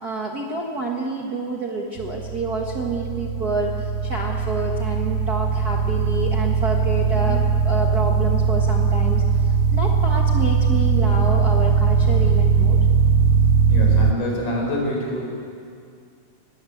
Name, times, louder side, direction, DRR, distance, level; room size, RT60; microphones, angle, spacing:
voice 1, 0.0-12.8, right 3 dB, 40° right, 0 dB, 1.5 m, -28 dB
sound 1, 2.0-14.1, right 6 dB, 85° right, 2.3 m, -20 dB
voice 2, 13.7-15.2, left 1 dB, 75° left, -1 dB, 6.5 m, -26 dB
20.5 x 16.0 x 8.6 m, 2.3 s
omnidirectional pair, 3.6 m